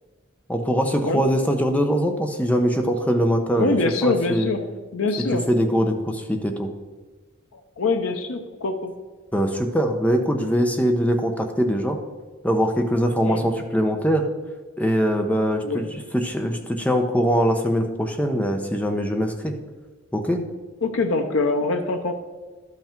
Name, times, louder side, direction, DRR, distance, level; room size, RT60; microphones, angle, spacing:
voice 1, 0.5-4.5 5.3-6.7 9.3-12.0 12.4-14.3 14.8-19.5 20.1-20.4, equal, 5° left, 4 dB, 0.8 m, -22 dB
voice 2, 3.6-4.6 4.9-5.4 7.5-8.9 13.3-13.4 15.6-15.9 20.8-22.1, left 3 dB, 80° left, 5 dB, 0.7 m, -24 dB
12.0 x 5.8 x 4.4 m, 1.3 s
head